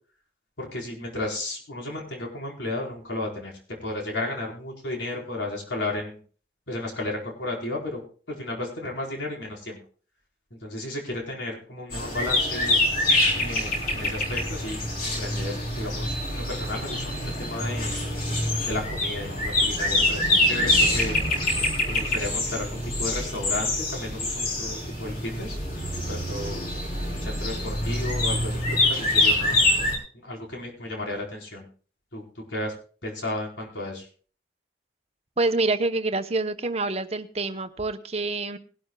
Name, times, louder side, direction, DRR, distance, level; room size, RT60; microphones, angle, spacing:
voice 1, 0.6-3.5 3.8-6.2 6.7-8.0 8.4-9.8 10.6-12.8 13.3-17.9 18.7-21.2 21.9-25.6 26.1-26.6 27.2-29.6 30.2-31.6 32.1-32.2 32.5-32.7 33.0-34.0, left 2 dB, 80° left, -1 dB, 4.4 m, -33 dB
sound 1, 11.9-30.0, left 1 dB, 50° left, 3.8 m, -25 dB
voice 2, 35.4-38.6, right 3 dB, 35° right, 9 dB, 0.9 m, -26 dB
21.0 x 12.0 x 2.3 m, 0.40 s
head